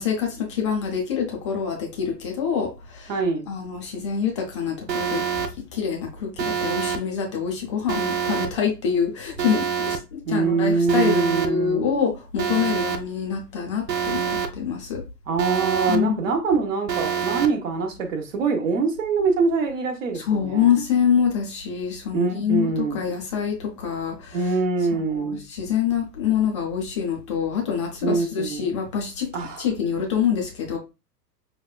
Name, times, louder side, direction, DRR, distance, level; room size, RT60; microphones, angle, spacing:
voice 1, 0.0-3.1 3.5-5.2 5.7-15.0 15.9-16.2 20.3-24.4 25.1-29.3 29.6-30.8, left 7 dB, 20° left, 0.4 m, -25 dB
voice 2, 3.1-3.5 10.3-11.9 15.3-20.7 22.1-23.0 24.3-25.4 28.0-28.7 29.3-29.7, right 4 dB, 50° right, 1.0 m, -24 dB
Alarm, 4.9-5.5 6.4-7.0 7.9-8.5 9.4-10.0 10.9-11.5 12.4-13.0 13.9-14.5 15.4-16.0 16.9-17.5, right 7 dB, 85° right, 0.6 m, -26 dB
5.0 x 2.2 x 2.2 m
figure-of-eight pair, 110°, 49 cm